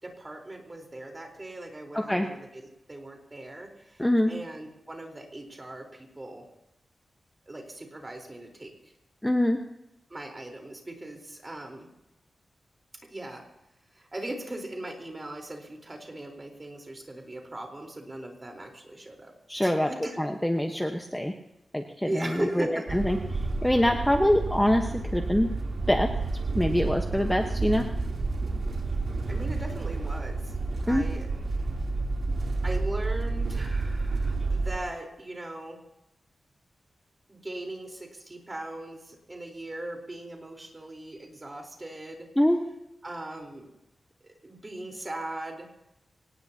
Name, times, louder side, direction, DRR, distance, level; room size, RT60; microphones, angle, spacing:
voice 1, 0.0-6.5 7.5-8.7 10.1-11.9 13.1-13.4 13.9-19.3 19.6-20.2 22.0-23.0 29.3-30.6 30.9-31.3 32.6-35.8 37.3-42.3 43.0-43.7 44.2-45.7, right 1 dB, 25° right, 2 dB, 4.1 m, -39 dB
voice 2, 1.9-2.3 4.0-4.3 9.2-9.6 19.5-19.9 20.2-21.3 21.7-23.2 23.6-25.5 25.9-26.1 26.5-27.8 30.9-31.0 42.4-42.6, left 1 dB, 5° left, 3 dB, 1.2 m, -24 dB
sound 1, 22.9-34.8, right 3 dB, 60° right, 3.2 m, -30 dB
24.0 x 19.5 x 2.9 m, 0.88 s
wide cardioid pair, 110°, 0 cm